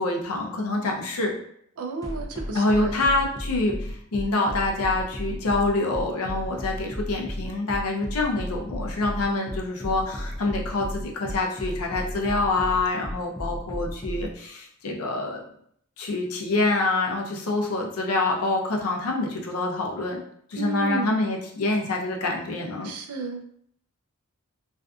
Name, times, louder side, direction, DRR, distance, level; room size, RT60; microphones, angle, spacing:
voice 1, 0.0-1.3 2.5-15.4 16.0-20.2 20.5-22.9, left 2 dB, 75° left, 1 dB, 0.5 m, -26 dB
voice 2, 1.8-3.0 20.6-21.2 22.8-23.4, right 4 dB, 75° right, 4 dB, 0.4 m, -32 dB
sound 1, 2.0-14.3, equal, 15° left, 0.4 m, -33 dB
2.5 x 2.4 x 2.3 m, 0.67 s
head